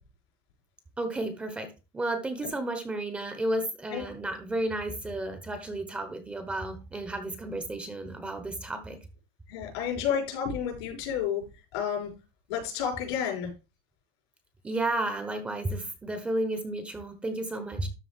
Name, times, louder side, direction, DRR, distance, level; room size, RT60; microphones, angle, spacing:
voice 1, 1.0-9.0 14.6-17.9, right 1 dB, 10° right, 8 dB, 1.2 m, -32 dB
voice 2, 9.5-11.4 11.7-12.1 12.5-13.5, left 8 dB, 90° left, 2 dB, 5.4 m, -30 dB
12.5 x 4.2 x 4.5 m, 0.29 s
cardioid pair, 175°, 13 cm